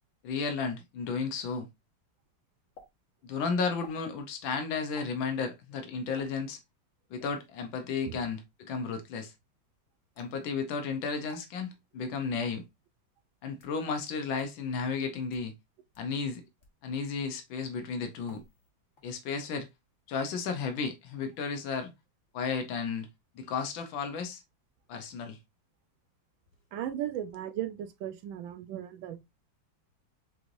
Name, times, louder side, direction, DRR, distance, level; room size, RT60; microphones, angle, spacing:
voice 1, 0.2-1.7 3.2-6.6 7.1-9.3 10.2-12.6 13.4-15.5 16.0-16.4 16.8-18.4 19.0-19.7 20.1-21.9 22.3-23.1 23.3-24.4 24.9-25.4, left 5 dB, 90° left, 1.5 m, -33 dB
sound 1, 2.8-2.9 3.8-4.0 5.0-5.2 6.2-6.3 7.2-7.5 10.2-10.4 11.3-11.4 12.4-12.5 13.3-13.8 14.4-14.5 15.2-15.5 15.9-16.1 16.6-16.8 18.3-18.7 19.0-19.4, left 4 dB, 45° left, 1.5 m, -55 dB
voice 2, 26.7-29.2, right 11 dB, 90° right, 1.4 m, -36 dB
6.5 x 3.1 x 2.5 m
omnidirectional pair, 2.1 m